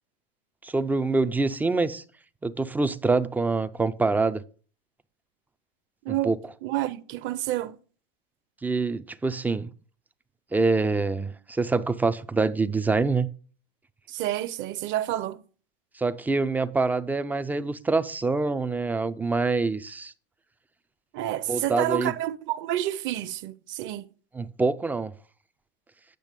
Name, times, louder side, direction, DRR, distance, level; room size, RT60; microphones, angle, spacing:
voice 1, 0.6-2.0 2.4-4.4 6.1-6.4 8.6-9.7 10.5-13.3 16.0-20.1 21.5-22.1 24.3-25.1, right 3 dB, 5° right, 0.3 m, -25 dB
voice 2, 6.6-7.8 14.1-15.4 21.1-24.1, right 13 dB, 40° right, 0.7 m, -29 dB
9.0 x 5.8 x 5.2 m
hypercardioid pair, 115°, 30 cm